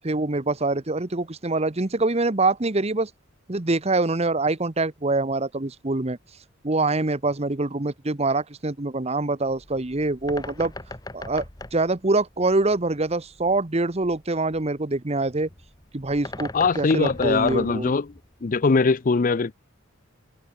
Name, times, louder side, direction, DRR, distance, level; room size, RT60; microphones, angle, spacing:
voice 1, 0.0-3.1 3.5-6.2 6.6-10.7 11.1-11.4 11.7-15.5 15.9-17.9, right 2 dB, 30° right, 1.0 m, -24 dB
Bird, 9.4-18.6, left 2 dB, 20° left, 1.4 m, -41 dB
voice 2, 16.5-18.1 18.4-19.5, left 4 dB, 40° left, 0.5 m, -21 dB
head